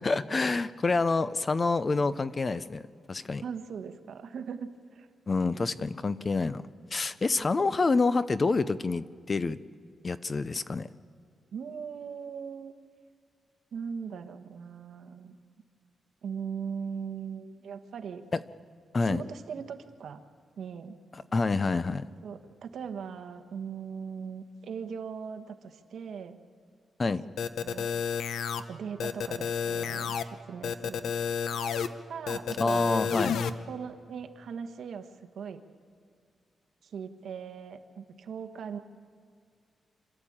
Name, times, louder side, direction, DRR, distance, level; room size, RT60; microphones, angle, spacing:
voice 1, 0.0-3.4 5.3-6.6 6.9-9.6 10.0-10.9 18.3-18.4 18.9-19.2 21.3-22.0 27.0-27.2 32.6-33.4, left 3 dB, 25° left, 14 dB, 0.5 m, -27 dB
voice 2, 3.4-5.1 11.5-12.7 13.7-15.3 16.2-18.2 19.0-20.2 20.6-21.0 22.2-26.4 27.6-27.9 28.7-31.0 32.1-33.4 33.7-35.6 36.8-38.8, right 6 dB, 65° right, 7 dB, 1.3 m, -39 dB
sound 1, 27.4-28.6 29.0-30.2 30.6-31.9 32.3-33.5, left 7 dB, 80° left, 0.8 m, -30 dB
26.5 x 12.5 x 8.7 m, 2.3 s
wide cardioid pair, 175°, 0 cm